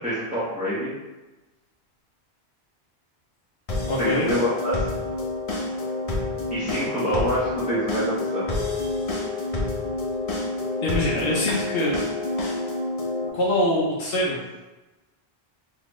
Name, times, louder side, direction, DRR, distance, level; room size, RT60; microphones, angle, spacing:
voice 1, 0.0-0.9 4.0-4.8 6.5-8.6, equal, 10° right, -12 dB, 1.0 m, -26 dB
sound 1, 3.7-13.3, left 2 dB, 40° left, 0.7 m, -28 dB
voice 2, 3.9-4.3 10.8-12.0 13.3-14.4, left 1 dB, 65° left, -5 dB, 0.9 m, -24 dB
3.9 x 3.1 x 3.0 m, 1.1 s
omnidirectional pair, 1.1 m